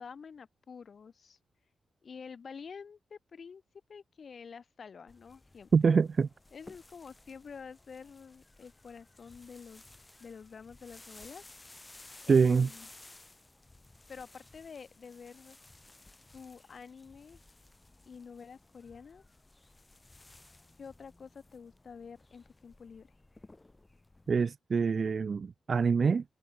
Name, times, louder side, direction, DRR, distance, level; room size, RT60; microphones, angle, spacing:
voice 1, 0.0-1.4 2.0-3.6 3.9-5.9 6.5-9.8 10.2-11.4 12.2-12.9 14.1-15.6 16.3-17.4 18.1-19.2 20.8-23.1, left 6 dB, 45° left, 2.4 m, -48 dB
sound 1, 5.1-24.4, left 2 dB, 15° left, 4.1 m, -57 dB
voice 2, 5.7-6.3 12.3-12.7 24.3-26.2, right 5 dB, 40° right, 0.3 m, -25 dB
wide cardioid pair, 160°, 0 cm